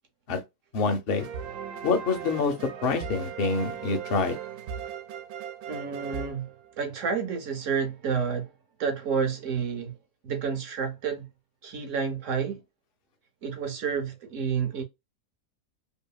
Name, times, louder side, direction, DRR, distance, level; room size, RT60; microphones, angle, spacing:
voice 1, 0.7-1.3 1.8-2.5 2.8-4.4, left 4 dB, 55° left, 0.7 m, -26 dB
sound 1, 1.2-7.1, right 8 dB, 90° right, 1.1 m, -38 dB
voice 2, 5.7-6.5 6.8-8.5 8.8-10.0 10.2-11.3 11.6-12.6 13.4-14.8, right 6 dB, 65° right, 0.9 m, -30 dB
2.7 x 2.5 x 2.3 m
omnidirectional pair, 1.6 m